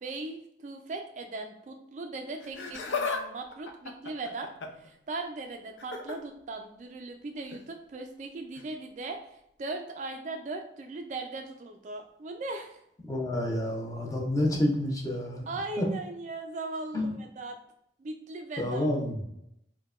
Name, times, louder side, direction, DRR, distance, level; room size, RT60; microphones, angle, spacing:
voice 1, 0.0-4.5 4.8-12.8 15.5-17.5 18.0-18.9, right 3 dB, 40° right, 5 dB, 0.3 m, -38 dB
Laughter, 2.4-3.2 3.5-4.9 5.8-6.2 7.5-7.6 8.6-8.7, left 5 dB, 85° left, 0.5 m, -34 dB
voice 2, 13.1-15.5 15.8-15.9 16.9-17.1 18.6-19.2, left 1 dB, 20° left, -1 dB, 0.6 m, -29 dB
4.5 x 2.2 x 2.4 m, 0.78 s
head